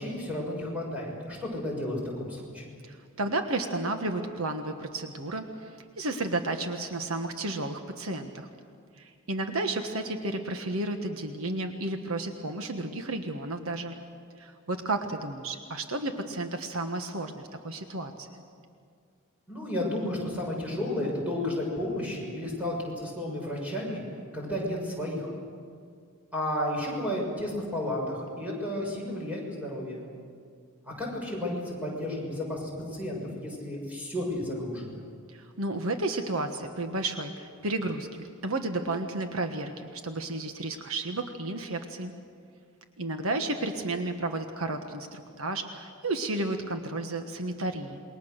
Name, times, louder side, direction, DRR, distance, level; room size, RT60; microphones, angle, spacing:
voice 1, 0.0-2.8 19.5-24.0 24.3-25.3 26.3-30.0 30.8-34.9, left 1 dB, 5° right, -3 dB, 6.8 m, -32 dB
voice 2, 2.8-8.5 9.0-13.9 14.4-18.4 35.3-42.1 43.0-48.0, right 2 dB, 75° right, 6 dB, 1.4 m, -32 dB
28.0 x 22.0 x 6.6 m, 2.2 s
head